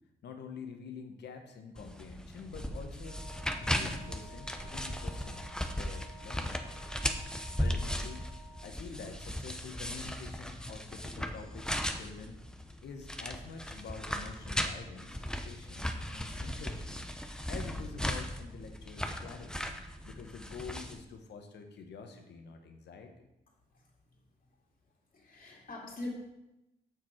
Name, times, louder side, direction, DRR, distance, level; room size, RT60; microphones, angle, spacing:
voice 1, 0.2-3.3 3.6-6.6 7.6-12.4 12.8-17.1 17.5-19.7 20.0-23.3, left 5 dB, 75° left, 5 dB, 1.1 m, -47 dB
sound 1, 1.8-21.0, equal, 5° left, 0.8 m, -37 dB
Wind instrument woodwind instrument, 3.0-8.7, right 1 dB, 80° right, 2.1 m, -54 dB
voice 2, 25.1-26.1, left 2 dB, 55° left, -2 dB, 2.4 m, -43 dB
6.7 x 6.1 x 4.5 m, 0.94 s
supercardioid pair, 50°, 18 cm